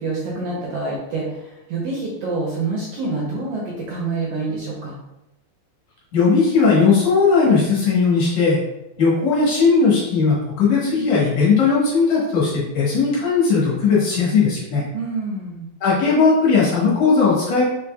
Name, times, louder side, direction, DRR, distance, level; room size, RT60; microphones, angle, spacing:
voice 1, 0.0-5.0 14.9-15.7, right 3 dB, 70° right, -4 dB, 1.6 m, -27 dB
voice 2, 6.1-8.6 9.0-14.8 15.8-17.6, left 4 dB, 65° left, -6 dB, 2.4 m, -17 dB
5.0 x 4.4 x 2.3 m, 0.94 s
omnidirectional pair, 3.5 m